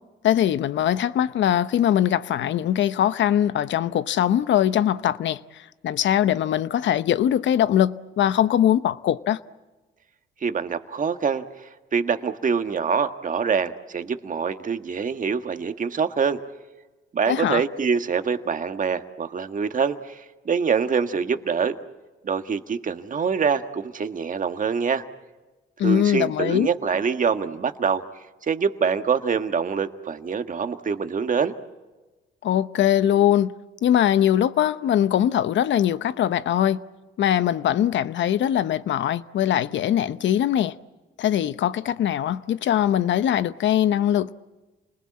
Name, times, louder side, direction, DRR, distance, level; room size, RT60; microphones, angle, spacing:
voice 1, 0.2-5.4 5.8-9.4 17.3-17.6 25.8-26.7 32.4-33.5 33.8-36.8 37.2-40.7 41.2-44.3, left 10 dB, 70° left, 0.9 m, -21 dB
voice 2, 10.4-11.4 11.9-16.4 17.1-21.8 22.2-25.0 25.8-28.0 28.4-31.5, right 6 dB, 40° right, 1.6 m, -25 dB
29.0 x 20.5 x 8.6 m
cardioid pair, 90°, 20 cm